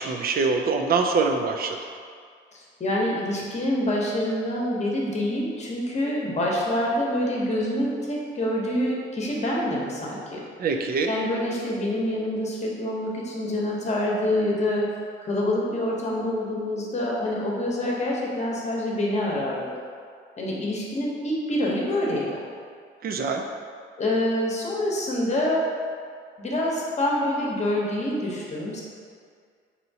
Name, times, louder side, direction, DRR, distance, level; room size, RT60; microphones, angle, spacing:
voice 1, 0.0-1.8 10.6-11.1 23.0-23.4, right 4 dB, 50° right, 4 dB, 0.4 m, -24 dB
voice 2, 2.5-10.4 11.1-14.9 15.2-19.8 20.4-22.4 24.0-25.6 26.4-28.8, left 1 dB, 35° left, -3 dB, 0.9 m, -26 dB
4.3 x 2.8 x 2.8 m, 2.1 s
cardioid pair, 90°, 20 cm